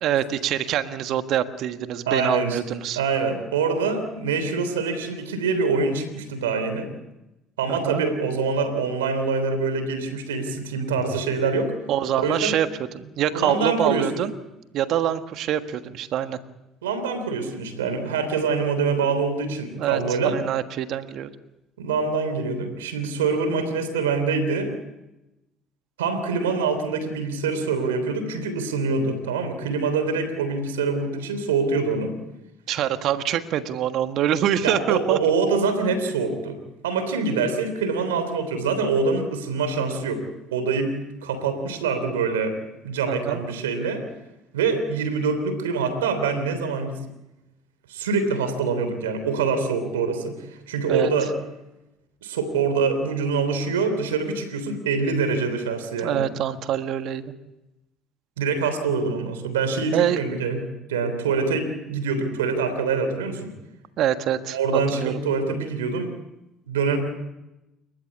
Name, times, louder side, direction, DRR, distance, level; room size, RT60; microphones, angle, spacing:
voice 1, 0.0-3.0 7.7-8.0 11.9-12.7 12.9-14.3 14.7-16.4 19.8-21.3 32.7-35.2 43.1-43.4 50.9-51.1 56.0-57.3 59.9-60.2 64.0-65.2, right 10 dB, 60° right, 10 dB, 1.5 m, -25 dB
voice 2, 2.1-2.6 2.9-6.9 7.6-11.7 12.2-12.5 13.3-14.1 16.8-20.4 21.8-24.7 26.0-32.1 34.6-36.6 36.8-40.2 40.5-41.0 41.2-42.6 42.8-44.1 44.5-47.0 47.9-51.3 52.2-56.2 58.4-60.6 60.9-63.5 64.5-66.1 66.7-67.0, right 4 dB, 85° right, 8 dB, 3.4 m, -25 dB
29.0 x 14.5 x 8.5 m, 0.96 s
hypercardioid pair, 60°, 0 cm